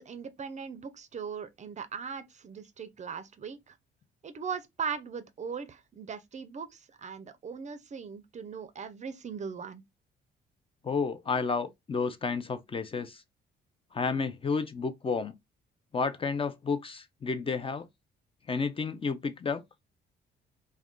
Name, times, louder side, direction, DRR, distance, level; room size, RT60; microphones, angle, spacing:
voice 1, 0.0-3.8 4.2-9.8, right 6 dB, 35° right, 0.4 m, -39 dB
voice 2, 10.8-13.2 13.9-15.3 15.9-17.9 18.5-19.6, left 4 dB, 30° left, 0.4 m, -31 dB
2.3 x 2.2 x 3.5 m
cardioid pair, 90°, 20 cm